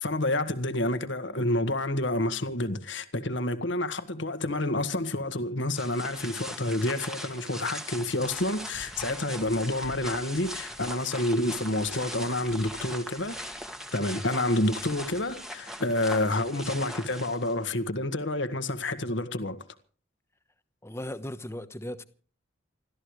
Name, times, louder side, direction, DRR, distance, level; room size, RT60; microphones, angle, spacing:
voice 1, 0.0-13.4 13.9-19.6, left 1 dB, 70° left, 1.7 m, -29 dB
sound 1, 5.7-17.7, equal, 5° right, 1.8 m, -40 dB
voice 2, 20.8-22.0, left 1 dB, 15° left, 1.1 m, -37 dB
29.0 x 13.5 x 3.3 m
head